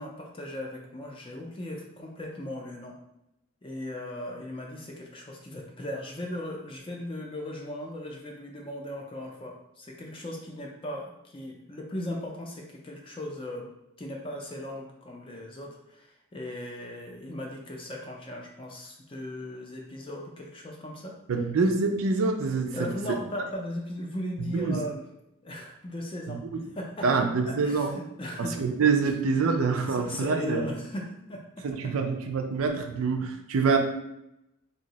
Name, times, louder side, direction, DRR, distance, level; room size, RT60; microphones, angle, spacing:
voice 1, 0.0-3.0 3.6-13.7 14.0-21.2 22.7-25.0 25.4-26.4 26.7-27.1 27.4-28.6 29.9-31.9, left 1 dB, 25° left, 0 dB, 0.4 m, -37 dB
voice 2, 21.3-22.9 24.4-24.8 26.3-26.6 27.0-27.9 28.4-30.6 31.6-33.8, right 4 dB, 80° right, 4 dB, 0.4 m, -26 dB
2.7 x 2.1 x 3.9 m, 0.85 s
head